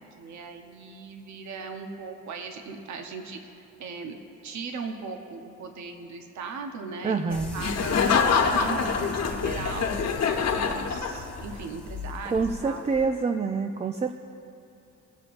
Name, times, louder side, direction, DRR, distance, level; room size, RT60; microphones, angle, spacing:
voice 1, 0.2-4.2 4.4-8.1 8.4-12.8, right 4 dB, 70° right, 4 dB, 1.0 m, -38 dB
voice 2, 7.0-7.6 12.3-14.1, right 4 dB, 20° right, 7 dB, 0.5 m, -26 dB
sound 1, 7.3-13.1, left 3 dB, 5° left, 1.8 m, -39 dB
Laughter, 7.6-11.5, left 5 dB, 60° left, 1.1 m, -25 dB
21.5 x 7.3 x 2.6 m, 2.7 s
cardioid pair, 90°, 30 cm